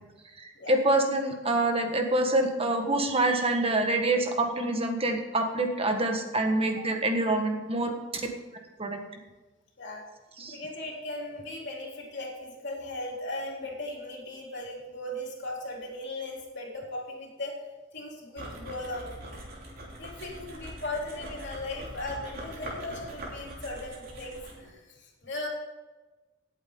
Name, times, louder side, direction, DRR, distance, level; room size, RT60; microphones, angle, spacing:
voice 1, 0.4-7.9 8.8-9.0 10.4-10.6, right 2 dB, 30° right, 4 dB, 1.6 m, -26 dB
voice 2, 10.5-17.6 17.9-19.1 20.0-25.5, left 1 dB, 65° left, -3 dB, 3.5 m, -37 dB
sound 1, 18.4-24.7, right 1 dB, 50° right, 3.3 m, -42 dB
18.0 x 8.3 x 3.9 m, 1.2 s
head